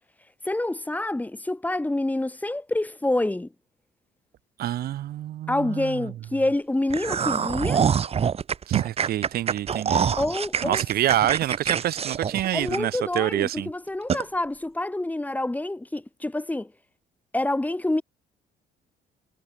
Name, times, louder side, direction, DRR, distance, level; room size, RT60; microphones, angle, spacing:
voice 1, 0.5-3.5 5.5-7.8 10.2-10.8 12.5-16.7 17.3-18.0, left 1 dB, 10° left, 4.1 m, -27 dB
voice 2, 4.6-6.1 8.7-10.1 10.6-13.7, right 13 dB, 65° right, 2.2 m, -27 dB
sound 1, 6.9-13.2 13.6-13.7 14.1-14.2, right 7 dB, 35° right, 1.4 m, -25 dB
cardioid pair, 110°, 17 cm